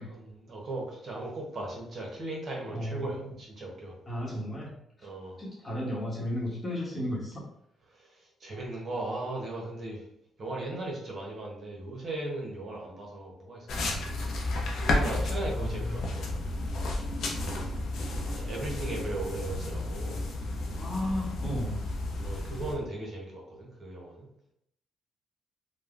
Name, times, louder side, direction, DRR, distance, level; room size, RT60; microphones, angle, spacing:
voice 1, 0.1-4.0 5.0-5.4 7.9-10.1 10.4-14.0 14.8-16.3 18.1-20.2 22.2-24.3, right 2 dB, 50° right, -2 dB, 0.8 m, -37 dB
voice 2, 2.7-3.1 4.1-4.7 5.4-7.4 15.5-16.1 20.8-21.8, equal, 25° left, -4 dB, 1.0 m, -34 dB
sound 1, 13.7-22.7, left 2 dB, 65° left, 0.5 m, -32 dB
3.1 x 2.1 x 2.4 m, 0.76 s
cardioid pair, 90°, 0 cm